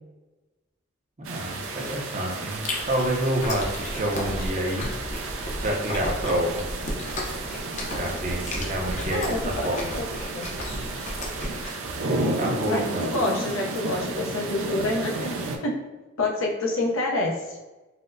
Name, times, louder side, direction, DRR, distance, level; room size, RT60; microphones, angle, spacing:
voice 1, 1.2-5.4 5.6-6.7 7.9-9.9 11.9-13.1, right 1 dB, 35° right, -1 dB, 0.6 m, -28 dB
sound 1, 1.2-15.6, right 2 dB, 85° right, 0.4 m, -33 dB
Chewing mastication, 2.5-11.7, left 1 dB, 35° left, 0.6 m, -33 dB
voice 2, 9.1-10.0 10.3-10.5 12.7-15.7 16.2-17.6, left 2 dB, 85° left, -1 dB, 0.6 m, -28 dB
4.3 x 2.0 x 2.5 m, 1.1 s
head